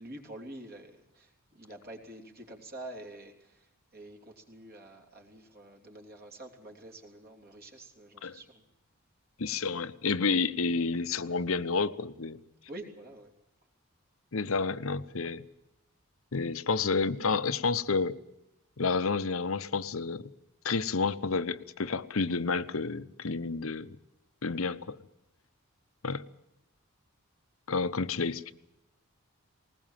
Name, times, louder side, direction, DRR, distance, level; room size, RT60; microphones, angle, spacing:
voice 1, 0.0-8.6 12.7-13.3, right 1 dB, 45° right, 3.4 m, -47 dB
voice 2, 9.4-12.4 14.3-15.5 16.3-18.2 18.8-20.2 20.6-24.0 24.4-25.0 26.0-26.2 27.7-28.5, left 4 dB, 70° left, 0.9 m, -30 dB
20.0 x 20.0 x 7.5 m
head